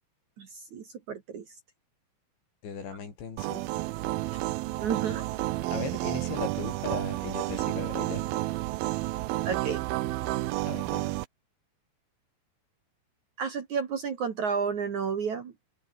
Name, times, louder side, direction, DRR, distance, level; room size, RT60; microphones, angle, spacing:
voice 1, 0.4-1.5 4.8-5.3 9.4-9.8 13.4-15.8, right 6 dB, 50° right, 2.7 m, -32 dB
voice 2, 2.6-3.7 5.7-8.3 10.6-11.1, left 6 dB, 70° left, 7.8 m, -38 dB
sound 1, 3.4-11.3, right 18 dB, 85° right, 2.1 m, -31 dB
omnidirectional pair, 5.4 m